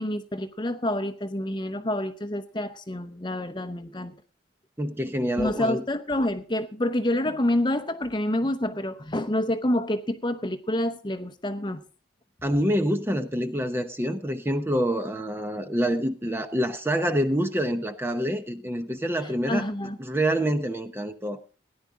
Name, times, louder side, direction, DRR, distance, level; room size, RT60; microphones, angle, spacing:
voice 1, 0.0-4.1 5.4-11.8 19.5-20.0, left 1 dB, 25° left, 0.8 m, -28 dB
voice 2, 4.8-5.8 12.4-19.7 20.0-21.4, equal, 10° right, 0.8 m, -26 dB
17.5 x 10.5 x 3.7 m
head